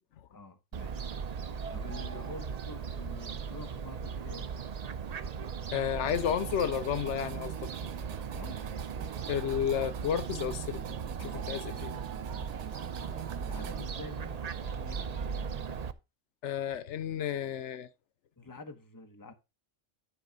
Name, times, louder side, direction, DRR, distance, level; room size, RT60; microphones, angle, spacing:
voice 1, 0.3-1.0 1.7-4.5 8.3-8.8 12.4-12.7 13.4-15.7 18.4-19.3, left 3 dB, 20° left, 1.0 m, -48 dB
Fowl, 0.7-15.9, right 6 dB, 45° right, 0.6 m, -38 dB
voice 2, 5.7-7.7 9.3-12.0 16.4-17.9, left 9 dB, 85° left, 1.0 m, -32 dB
sound 1, 6.1-13.9, right 12 dB, 85° right, 0.9 m, -45 dB
11.0 x 4.0 x 5.1 m
omnidirectional pair, 1.2 m